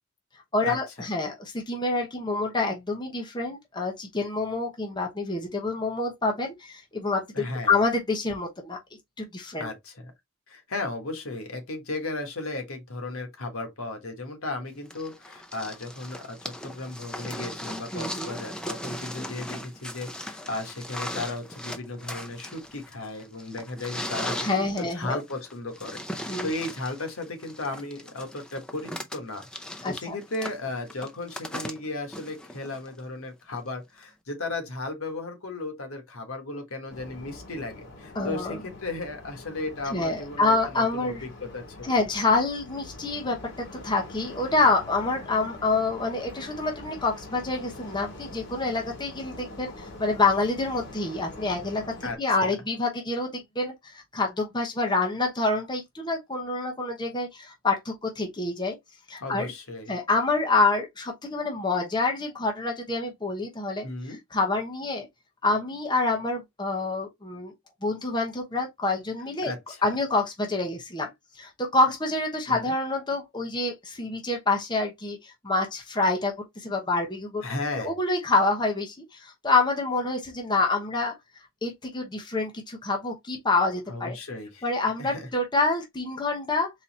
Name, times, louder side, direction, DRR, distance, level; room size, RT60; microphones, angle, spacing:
voice 1, 0.5-8.8 9.2-9.7 17.9-18.3 24.4-25.2 26.3-26.5 29.8-30.1 38.1-38.6 39.9-41.2 41.8-43.4 43.8-58.8 59.1-59.5 59.9-65.1 65.4-67.5 67.8-69.5 69.8-71.1 71.4-77.4 77.8-81.1 81.6-84.2 84.6-86.7, left 3 dB, 20° left, 0.9 m, -27 dB
voice 2, 7.3-7.7 9.6-10.1 10.5-41.1 41.4-42.0 52.0-52.5 59.2-59.9 63.8-64.2 69.4-69.9 72.5-72.7 77.4-77.9 83.9-84.7 85.0-85.3, left 2 dB, 80° left, 1.5 m, -35 dB
sound 1, 14.9-33.0 34.0-34.1, left 1 dB, 5° left, 0.5 m, -38 dB
sound 2, 36.9-52.2, left 2 dB, 50° left, 2.6 m, -44 dB
4.0 x 2.9 x 4.2 m
head